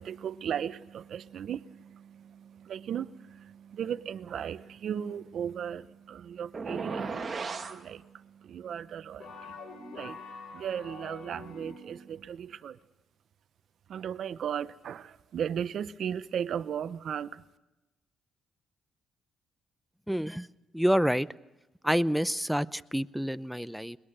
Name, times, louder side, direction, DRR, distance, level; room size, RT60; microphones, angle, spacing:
voice 1, 0.0-12.8 13.9-17.4, right 8 dB, 65° right, 0.8 m, -37 dB
sound 1, 6.5-7.8, right 4 dB, 35° right, 2.3 m, -35 dB
sound 2, 9.2-12.1, left 3 dB, 60° left, 4.1 m, -45 dB
voice 2, 20.1-20.5 20.7-21.3 21.8-24.0, equal, ahead, 0.7 m, -28 dB
21.5 x 21.0 x 6.7 m
cardioid pair, 90°, 0 cm